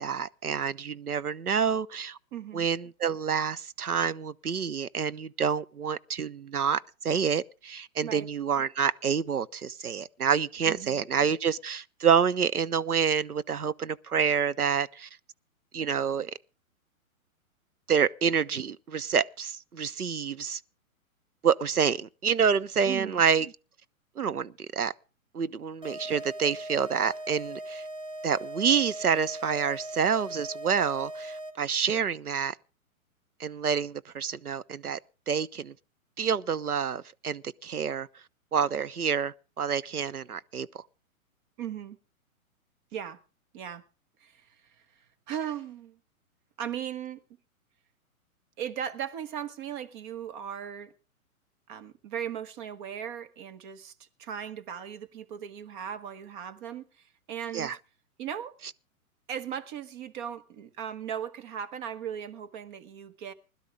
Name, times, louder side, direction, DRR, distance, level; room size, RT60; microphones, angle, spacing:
voice 1, 0.0-2.2 2.5-15.1 15.7-16.3 17.9-20.6 21.4-23.5 24.2-24.9 25.3-27.8 28.2-32.5 33.4-35.0 35.3-35.7 36.2-38.1 38.5-40.7 57.5-57.8, right 7 dB, 85° right, 0.9 m, -28 dB
voice 2, 2.3-2.7 8.0-8.3 10.6-11.0 22.8-23.2 41.6-42.0 42.9-43.2 43.5-43.8 44.2-44.5 45.3-46.0 46.6-47.2 48.6-50.9 51.7-57.7 58.2-58.6 59.3-63.3, right 9 dB, 35° right, 1.4 m, -37 dB
sound 1, 25.8-31.8, right 1 dB, 10° right, 2.3 m, -39 dB
20.5 x 12.0 x 3.6 m
figure-of-eight pair, 120°, 43 cm